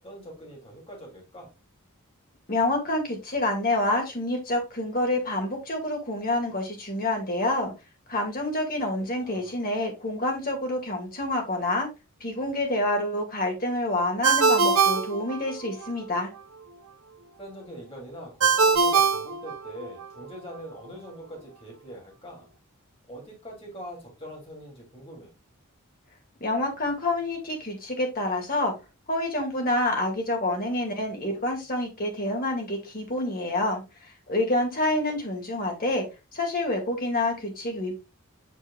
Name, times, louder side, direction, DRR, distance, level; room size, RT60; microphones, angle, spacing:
voice 1, 0.0-1.5 9.2-9.6 17.4-22.5 23.1-25.3, equal, 25° left, 3.1 m, -43 dB
voice 2, 2.5-7.7 8.1-11.9 12.2-16.3 26.4-28.7 29.1-36.1 36.3-37.9, left 1 dB, 40° left, 2.4 m, -27 dB
Ringtone, 14.2-15.9 18.4-20.1, right 5 dB, 75° right, 0.9 m, -22 dB
8.2 x 5.7 x 2.4 m
head